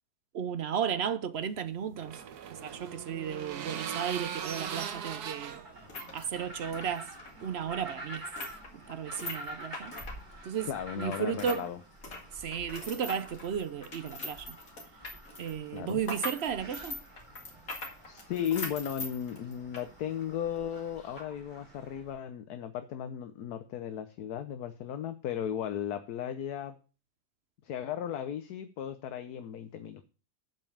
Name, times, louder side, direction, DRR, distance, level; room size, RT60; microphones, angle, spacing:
voice 1, 0.3-2.2 2.5-5.6 6.1-7.1 7.4-8.3 8.7-9.9 10.4-11.7 12.3-14.6 15.4-17.0, right 8 dB, 55° right, 0.7 m, -34 dB
sound 1, 1.4-6.9, right 8 dB, 75° right, 1.5 m, -40 dB
sound 2, 4.4-22.2, right 1 dB, 30° right, 2.5 m, -49 dB
sound 3, 5.7-11.7 11.9-19.9 20.2-20.3 21.0-21.2, left 2 dB, 55° left, 2.7 m, -42 dB
voice 2, 10.6-11.8 15.7-16.0 18.1-26.8 27.6-30.0, left 9 dB, 75° left, 1.3 m, -36 dB
8.2 x 5.3 x 7.0 m
omnidirectional pair, 1.7 m